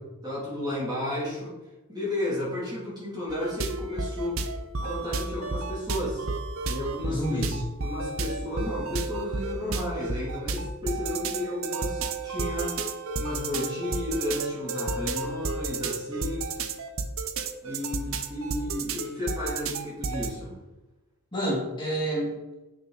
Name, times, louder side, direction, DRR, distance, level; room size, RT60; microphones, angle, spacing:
voice 1, 0.2-1.5 1.9-4.4 4.8-6.2 6.6-7.4 7.8-12.7 13.1-16.5 17.6-20.5, left 1 dB, 20° right, -7 dB, 3.0 m, -33 dB
sound 1, 3.3-20.3, right 3 dB, 65° right, 0.7 m, -32 dB
voice 2, 7.1-7.6 21.3-22.5, right 1 dB, 20° left, -7 dB, 2.8 m, -29 dB
8.3 x 6.7 x 4.0 m, 1.1 s
head